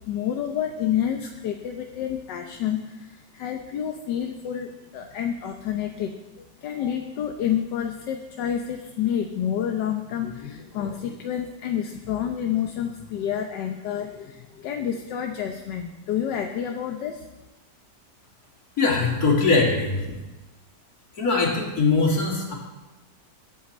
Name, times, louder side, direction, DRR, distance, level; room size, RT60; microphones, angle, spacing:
voice 1, 0.1-6.1 6.6-17.2, left 9 dB, 80° left, 4 dB, 1.5 m, -29 dB
voice 2, 18.8-20.2 21.2-22.5, left 3 dB, 55° left, -1 dB, 3.1 m, -21 dB
21.5 x 8.7 x 4.3 m, 1.1 s
omnidirectional pair, 1.9 m